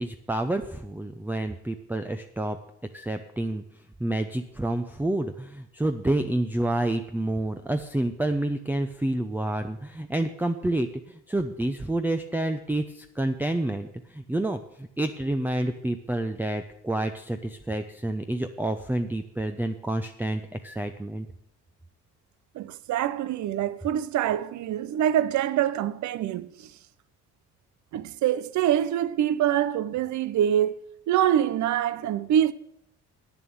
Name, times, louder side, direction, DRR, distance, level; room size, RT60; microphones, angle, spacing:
voice 1, 0.0-2.6 2.9-3.6 4.0-21.3, right 1 dB, 5° right, 0.6 m, -29 dB
voice 2, 22.5-26.7 27.9-30.8 31.1-32.5, right 11 dB, 70° right, 0.6 m, -25 dB
8.9 x 7.1 x 8.6 m
cardioid pair, 90°, 30 cm